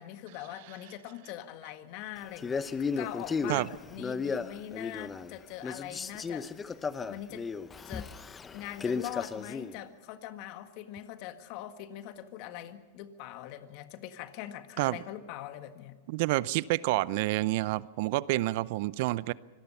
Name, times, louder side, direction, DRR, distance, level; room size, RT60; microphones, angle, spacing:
voice 1, 0.0-2.6 3.0-7.4 7.9-8.1 8.5-16.0, left 12 dB, 50° left, 9 dB, 1.7 m, -42 dB
Male speech man speaking, 2.4-5.3 5.6-9.7, left 5 dB, 20° left, 0.9 m, -35 dB
voice 2, 16.1-19.3, right 18 dB, 55° right, 20 dB, 0.6 m, -28 dB
25.0 x 18.5 x 5.6 m, 1.5 s
hypercardioid pair, 115°, 0 cm